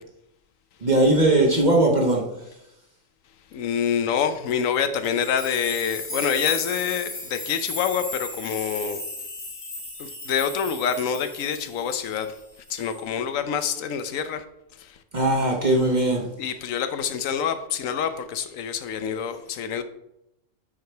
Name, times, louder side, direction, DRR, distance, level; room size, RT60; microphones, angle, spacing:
voice 1, 0.8-2.2 15.1-16.2, right 1 dB, 35° right, 1.2 m, -19 dB
voice 2, 3.5-9.0 10.0-12.4 12.7-14.4 14.8-15.0 16.4-19.8, left 7 dB, 85° left, 1.1 m, -26 dB
sound 1, 5.0-12.4 12.7-13.0, left 2 dB, 65° left, 3.0 m, -36 dB
8.2 x 4.8 x 4.5 m
omnidirectional pair, 1.3 m